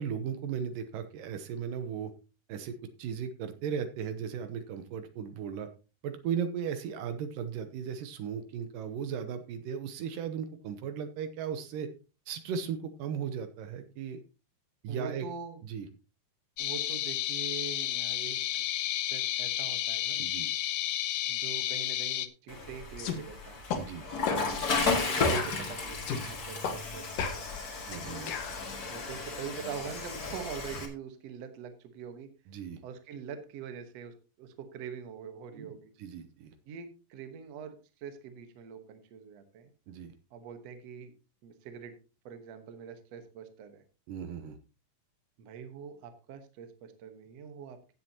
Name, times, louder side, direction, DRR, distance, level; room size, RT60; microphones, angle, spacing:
voice 1, 0.0-2.1 2.5-5.7 6.0-11.9 12.3-14.2 14.8-15.3 15.6-15.9 20.2-20.5 23.7-24.4 27.9-28.3 32.5-32.8 35.5-35.7 36.0-36.5 39.9-40.1 44.1-44.6, right 7 dB, 75° right, 9 dB, 2.5 m, -36 dB
voice 2, 14.9-15.6 16.6-18.6 19.1-20.2 21.3-23.6 24.8-27.6 28.9-32.3 32.8-35.9 36.7-39.7 40.3-41.1 41.4-42.0 42.3-43.8 45.4-47.8, right 7 dB, 60° right, 8 dB, 2.1 m, -44 dB
sound 1, 16.6-22.3, left 13 dB, 90° left, 1.5 m, -32 dB
Water / Toilet flush, 22.5-30.9, left 3 dB, 35° left, 1.7 m, -33 dB
sound 2, 23.0-23.2 23.7-23.8 24.3-24.5 24.9-25.0 25.3-26.2 26.6-26.8 27.2-28.6, left 6 dB, 70° left, 2.9 m, -35 dB
16.0 x 7.7 x 2.9 m, 0.32 s
omnidirectional pair, 4.0 m